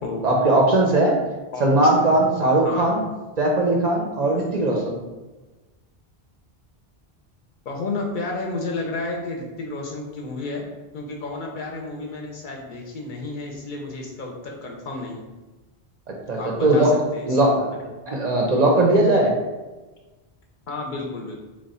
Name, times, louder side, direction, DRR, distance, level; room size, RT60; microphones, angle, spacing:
voice 1, 0.2-1.2 1.6-3.0 3.4-5.0 16.3-16.9 17.3-17.5 18.1-19.3, right 2 dB, 50° right, -2 dB, 0.5 m, -19 dB
voice 2, 7.7-10.7 10.9-15.3 16.3-17.6 20.7-21.3, left 3 dB, 60° left, 0 dB, 0.6 m, -31 dB
3.0 x 2.2 x 4.0 m, 1.2 s
omnidirectional pair, 1.0 m